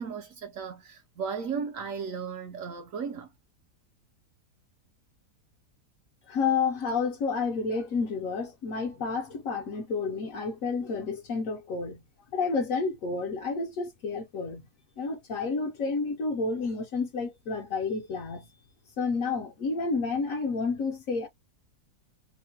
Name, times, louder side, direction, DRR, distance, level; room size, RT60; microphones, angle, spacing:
voice 1, 0.0-3.3, right 6 dB, 65° right, 0.8 m, -35 dB
voice 2, 6.3-12.0 12.3-14.7 15.0-18.5 19.0-21.3, left 4 dB, 65° left, 0.9 m, -30 dB
2.9 x 2.1 x 2.7 m
omnidirectional pair, 1.7 m